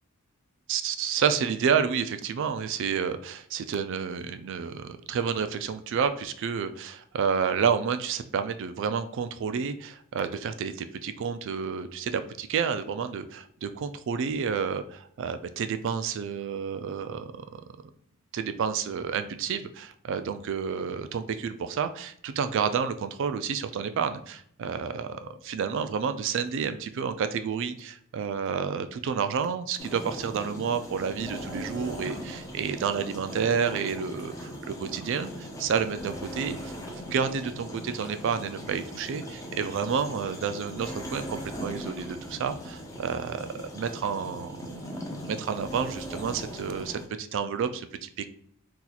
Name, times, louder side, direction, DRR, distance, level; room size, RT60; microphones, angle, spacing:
voice 1, 0.7-17.6 18.3-44.7 45.3-48.3, right 6 dB, 55° right, 10 dB, 0.3 m, -30 dB
sound 1, 29.8-47.1, equal, 15° left, 0.4 m, -39 dB
2.9 x 2.3 x 3.9 m, 0.64 s
head